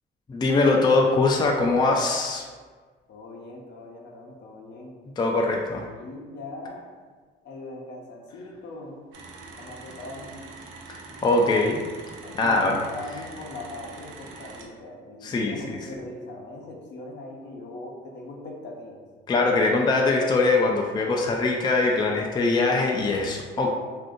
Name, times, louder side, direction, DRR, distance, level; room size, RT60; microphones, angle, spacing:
voice 1, 0.3-2.4 5.2-5.8 10.9-11.8 12.3-12.8 15.2-15.8 19.3-23.7, left 3 dB, 20° left, 0 dB, 0.4 m, -22 dB
voice 2, 3.1-5.0 5.9-6.9 7.4-9.0 9.6-10.5 11.2-11.6 12.2-19.0, left 2 dB, 65° left, 0 dB, 0.6 m, -40 dB
sound 1, 9.1-14.7, right 3 dB, 80° right, 0.5 m, -44 dB
2.5 x 2.5 x 3.6 m, 1.5 s
cardioid pair, 90°, 20 cm